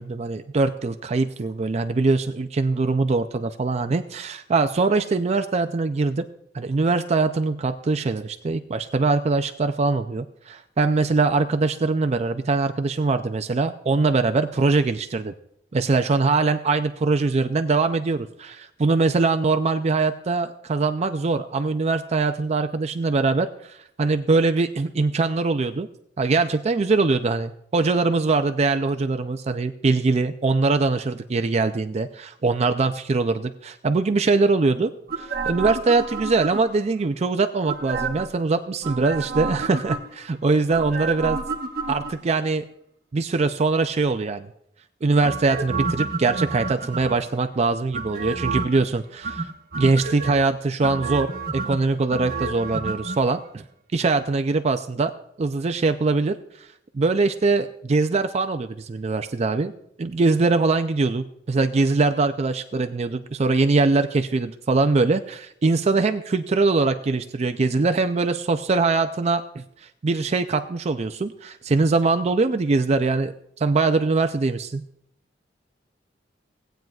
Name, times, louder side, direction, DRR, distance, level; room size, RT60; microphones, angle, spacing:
voice 1, 0.0-6.2 6.5-15.3 15.7-25.9 26.2-34.9 35.2-41.4 41.9-42.6 43.1-44.5 45.0-49.5 49.8-53.6 53.9-55.1 55.4-56.7 56.9-59.7 60.0-74.8, right 3 dB, 35° right, 8 dB, 0.4 m, -22 dB
sound 1, 35.1-36.9 37.7-38.4 38.8-40.3 40.7-42.4 45.2-47.3 47.9-48.8 49.2-50.4 50.8-53.2 53.5-53.6, right 4 dB, 55° right, 1.1 m, -30 dB
17.5 x 9.1 x 2.4 m, 0.73 s
head